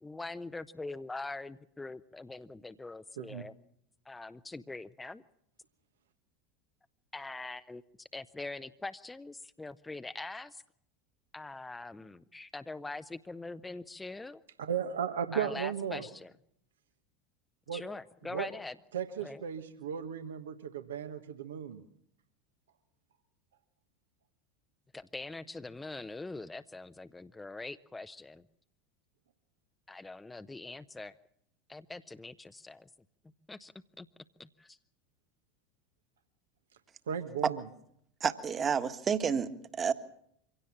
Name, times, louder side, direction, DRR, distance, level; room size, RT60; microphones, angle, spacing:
voice 1, 0.0-3.5 4.1-5.2 7.1-10.6 11.3-14.4 15.3-16.3 17.7-18.8 19.2-19.4 24.9-28.4 29.9-31.1 31.7-32.9 33.5-34.1 34.4-34.8, left 2 dB, 10° left, 12 dB, 0.8 m, -43 dB
voice 2, 14.6-16.0 17.7-17.8 18.3-18.5 18.9-21.8 37.1-37.6, right 8 dB, 75° right, 8 dB, 1.3 m, -35 dB
voice 3, 38.2-39.9, right 7 dB, 30° right, 10 dB, 1.6 m, -30 dB
24.5 x 17.0 x 7.4 m, 0.73 s
figure-of-eight pair, 80°, 0 cm